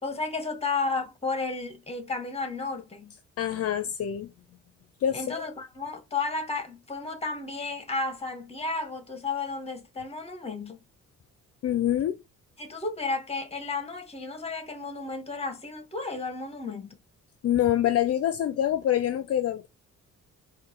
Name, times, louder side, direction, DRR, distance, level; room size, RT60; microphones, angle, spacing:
voice 1, 0.0-3.2 5.1-10.8 12.6-17.0, left 3 dB, 20° left, 1.3 m, -33 dB
voice 2, 3.4-4.3 5.0-5.4 11.6-12.2 17.4-19.7, left 11 dB, 55° left, 0.5 m, -25 dB
4.5 x 2.6 x 4.2 m
cardioid pair, 90°, 30 cm